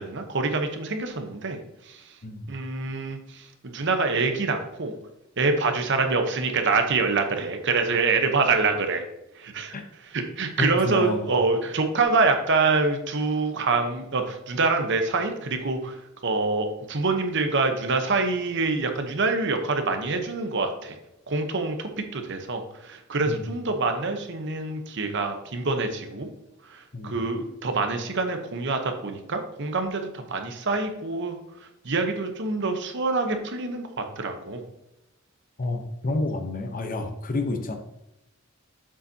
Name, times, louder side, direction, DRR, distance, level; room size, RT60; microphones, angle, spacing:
voice 1, 0.0-2.1 2.5-4.9 5.4-9.0 9.3-16.0 16.2-21.0 21.3-26.3 26.7-31.4 31.8-34.6, right 3 dB, 60° right, 6 dB, 1.0 m, -26 dB
voice 2, 10.6-11.3 23.3-23.4 26.9-27.2 35.6-37.8, left 2 dB, 40° left, 5 dB, 0.8 m, -29 dB
7.4 x 6.9 x 2.8 m, 0.88 s
head